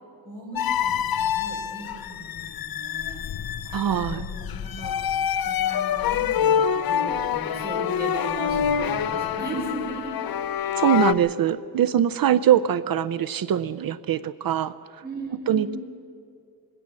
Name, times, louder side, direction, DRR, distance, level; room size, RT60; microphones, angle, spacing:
voice 1, 0.2-3.2 4.0-4.9 5.4-7.0 7.3-10.7 15.0-15.8, right 1 dB, 25° right, -3 dB, 5.8 m, -37 dB
sound 1, 0.5-11.1, left 8 dB, 60° left, 0.6 m, -26 dB
voice 2, 3.7-4.3 10.8-14.7 15.5-15.8, right 10 dB, 55° right, 14 dB, 0.5 m, -22 dB
20.5 x 16.5 x 7.5 m, 2.3 s
wide cardioid pair, 165°, 41 cm